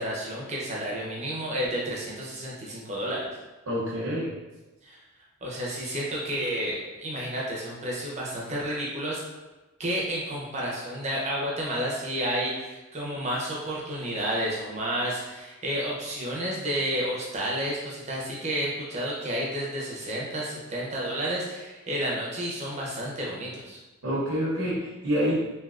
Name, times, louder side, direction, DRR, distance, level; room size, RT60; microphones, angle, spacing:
voice 1, 0.0-3.3 4.8-5.0 5.4-9.2 9.8-23.8, equal, 30° right, -4 dB, 0.7 m, -31 dB
voice 2, 3.7-4.4 24.0-25.4, equal, 80° right, -8 dB, 0.8 m, -27 dB
3.3 x 2.9 x 2.4 m, 1.1 s
head